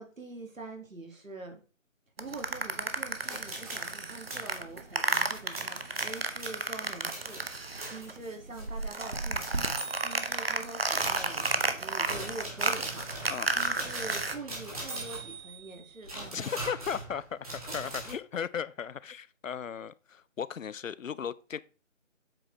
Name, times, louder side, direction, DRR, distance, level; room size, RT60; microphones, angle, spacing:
voice 1, 0.0-1.6 2.2-9.5 10.0-16.5, right 2 dB, 80° right, 1.9 m, -44 dB
sound 1, 2.2-8.2 8.5-14.4, right 3 dB, 50° right, 0.7 m, -32 dB
sound 2, 3.2-3.9 4.3-4.6 5.1-8.1 8.6-8.8 9.4-10.5 11.0-18.1, right 2 dB, 30° right, 1.8 m, -41 dB
voice 2, 16.3-21.6, left 7 dB, 75° left, 0.5 m, -36 dB
7.6 x 4.4 x 3.0 m
figure-of-eight pair, 160°, 40 cm